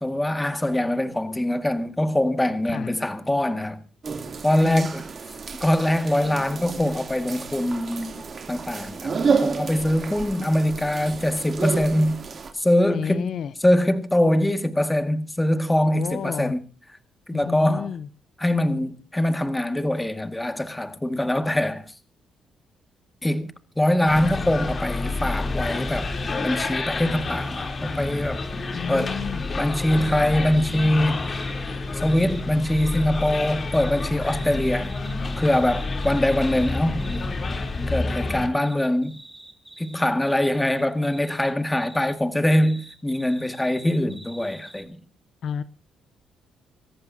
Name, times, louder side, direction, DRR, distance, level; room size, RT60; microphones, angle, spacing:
voice 1, 0.0-3.8 4.4-5.0 5.6-9.1 9.4-12.2 12.5-13.3 13.6-16.6 17.3-17.9 18.4-21.9 23.2-23.5 23.8-26.1 26.4-28.4 28.9-29.1 29.6-31.2 31.9-34.9 35.4-37.0 37.9-39.2 39.8-45.0, left 1 dB, 10° left, 1.9 m, -23 dB
sound 1, 4.0-12.5, right 5 dB, 45° right, 2.9 m, -30 dB
voice 2, 4.5-4.9 12.8-13.5 15.9-16.5 17.3-18.1 28.7-29.6 45.4-45.6, left 8 dB, 65° left, 0.7 m, -30 dB
sound 2, 24.1-38.5, left 3 dB, 40° left, 3.4 m, -29 dB
sound 3, 29.7-31.6 32.0-37.3 38.2-42.2 42.5-44.8, right 1 dB, 5° right, 6.0 m, -46 dB
27.0 x 14.0 x 2.8 m
cardioid pair, 90°, 0 cm